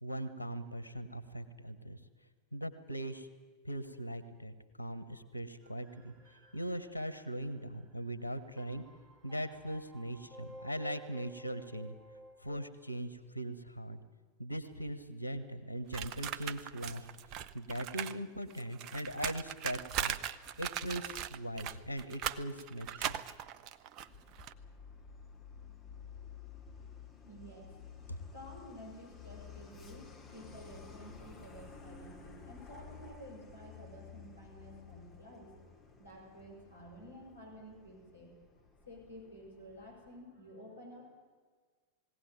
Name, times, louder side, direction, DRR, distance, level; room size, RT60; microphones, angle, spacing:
voice 1, 0.0-2.0 2.5-3.3 3.6-8.8 9.2-11.9 12.4-14.0 14.4-17.1 17.5-20.2 20.6-23.2 28.1-28.2, right 1 dB, 85° right, 12 dB, 1.3 m, -40 dB
sound 1, 5.6-12.7, right 1 dB, 15° right, 2.5 m, -55 dB
sound 2, 15.9-18.2 18.4-24.5, right 10 dB, 40° right, 0.7 m, -39 dB
Truck, 24.0-40.2, left 6 dB, 20° left, 2.8 m, -53 dB
voice 2, 27.2-35.5 36.0-38.3 38.8-41.1, equal, 85° left, -2 dB, 6.1 m, -52 dB
20.5 x 17.0 x 9.3 m, 1.5 s
figure-of-eight pair, 90°, 0 cm